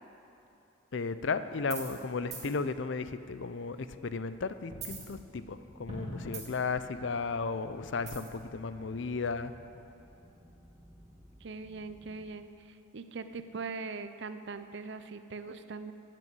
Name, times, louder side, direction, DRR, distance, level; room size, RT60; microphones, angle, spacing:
voice 1, 0.9-9.5, left 4 dB, 60° left, 12 dB, 0.5 m, -34 dB
sound 1, 1.6-2.0 2.3-2.5 4.7-5.6 5.9-6.7 8.1-8.4, right 4 dB, 35° right, 2.2 m, -42 dB
sound 2, 5.1-12.3, equal, 15° right, 1.5 m, -57 dB
voice 2, 11.4-15.9, right 4 dB, 55° right, 11 dB, 0.6 m, -41 dB
13.5 x 7.6 x 8.2 m, 2.8 s
head